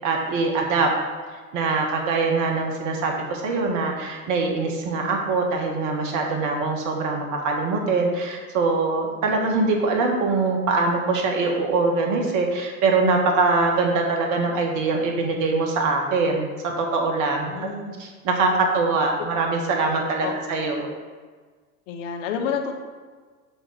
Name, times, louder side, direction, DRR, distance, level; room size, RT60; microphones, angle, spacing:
voice 1, 0.0-0.9 1.5-17.5 18.0-20.9, right 3 dB, 40° right, 1 dB, 1.4 m, -23 dB
voice 2, 17.5-18.0 20.2-20.4 21.9-22.8, left 6 dB, 60° left, 3 dB, 1.4 m, -29 dB
7.9 x 3.8 x 6.1 m, 1.5 s
hypercardioid pair, 90°, 43 cm